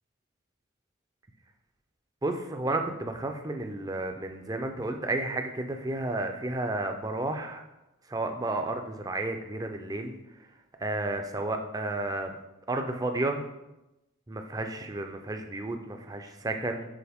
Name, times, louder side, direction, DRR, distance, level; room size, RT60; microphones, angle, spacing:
voice 1, 2.2-7.6 8.1-10.1 10.8-12.3 12.7-13.4 14.3-16.9, right 2 dB, 15° right, 5 dB, 0.4 m, -32 dB
6.9 x 3.9 x 3.5 m, 0.95 s
head